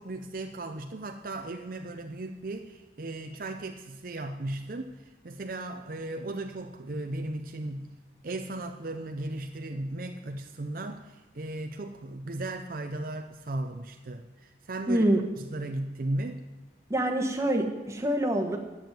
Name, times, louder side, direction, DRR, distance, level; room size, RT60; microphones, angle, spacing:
voice 1, 0.0-7.9 8.2-15.0 15.4-16.4, right 2 dB, 50° right, 5 dB, 0.6 m, -36 dB
voice 2, 14.9-15.2 16.9-18.6, right 1 dB, 15° right, 1 dB, 1.2 m, -25 dB
10.5 x 7.2 x 9.1 m, 1.2 s
head